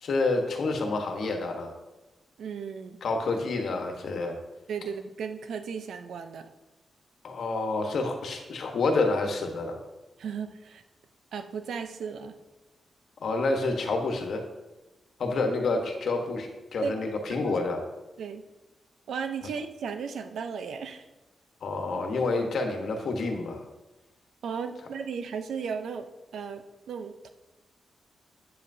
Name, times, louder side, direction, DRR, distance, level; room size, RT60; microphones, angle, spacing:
voice 1, 0.0-1.7 3.0-4.4 7.2-9.8 13.2-14.4 15.2-17.8 21.6-23.6, left 3 dB, 65° left, 3 dB, 1.2 m, -28 dB
voice 2, 2.4-3.0 4.7-6.5 10.2-10.8 11.3-12.4 16.8-16.9 17.4-17.6 18.2-18.4 19.1-21.0 24.4-26.1 26.3-27.3, right 6 dB, 80° right, 8 dB, 0.6 m, -35 dB
8.7 x 7.6 x 2.7 m, 1.1 s
wide cardioid pair, 160°, 0 cm